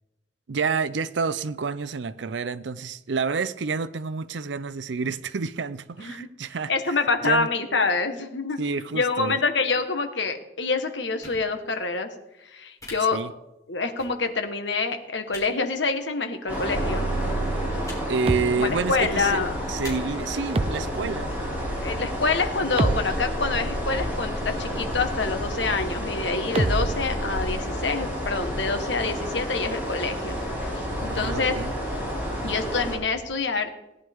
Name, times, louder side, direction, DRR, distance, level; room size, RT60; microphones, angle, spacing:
voice 1, 0.5-7.0 7.2-7.5 8.6-9.4 13.0-13.3 18.1-19.4 19.7-21.3 31.1-31.7, right 5 dB, 80° right, 0.6 m, -29 dB
voice 2, 6.7-8.6 8.9-12.1 12.4-13.2 13.7-17.1 18.6-19.6 21.8-31.5 32.4-33.7, left 4 dB, 80° left, 1.5 m, -26 dB
sound 1, 11.2-11.4 12.8-12.9 14.0-14.1 15.3-15.4 16.5-16.6 17.8-18.0 18.6-18.8 19.8-19.9, left 3 dB, 20° left, 3.6 m, -40 dB
sound 2, 16.5-33.0, equal, 10° right, 5.6 m, -31 dB
sound 3, 16.7-26.0 26.5-27.6, right 2 dB, 30° right, 0.5 m, -30 dB
18.0 x 10.5 x 3.6 m
head